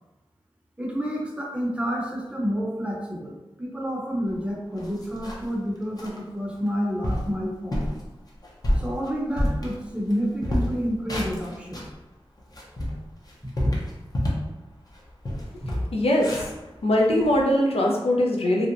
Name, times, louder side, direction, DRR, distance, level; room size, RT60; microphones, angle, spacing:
voice 1, 0.8-7.9 8.7-11.8, equal, 10° right, -2 dB, 0.7 m, -29 dB
sound 1, 4.3-4.4 4.8-5.5 6.0-6.2 6.7-6.8 7.0-7.3 7.7-8.0 8.4-10.1 10.4-11.9 12.4-14.5 14.9-15.0 15.2-17.4, equal, 40° left, 0.6 m, -28 dB
voice 2, 15.7-16.4 16.8-18.7, left 1 dB, 80° left, -1 dB, 0.5 m, -22 dB
2.7 x 2.0 x 2.5 m, 1.0 s
cardioid pair, 45°, 10 cm